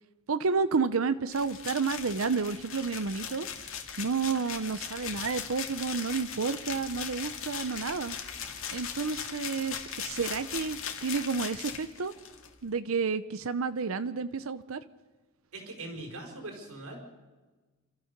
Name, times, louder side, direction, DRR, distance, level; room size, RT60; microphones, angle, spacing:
voice 1, 0.3-3.5 4.0-8.2 8.7-12.1 12.6-14.8, right 5 dB, 70° right, 13 dB, 0.7 m, -30 dB
sound 1, 1.3-12.5, left 7 dB, 65° left, 2.3 m, -39 dB
voice 2, 15.5-17.0, right 2 dB, 85° right, 2 dB, 4.7 m, -41 dB
29.5 x 13.0 x 6.7 m, 1.3 s
head